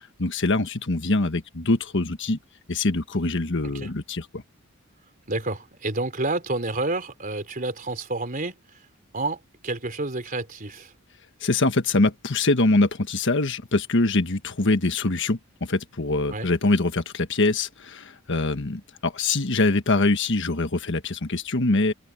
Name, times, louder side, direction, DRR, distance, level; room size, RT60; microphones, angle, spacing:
voice 1, 0.2-2.4 2.7-4.4 11.4-21.9, left 2 dB, 60° left, 1.4 m, -23 dB
voice 2, 5.3-8.6 9.1-10.9 16.3-16.5, right 2 dB, 40° right, 3.5 m, -29 dB
open air
head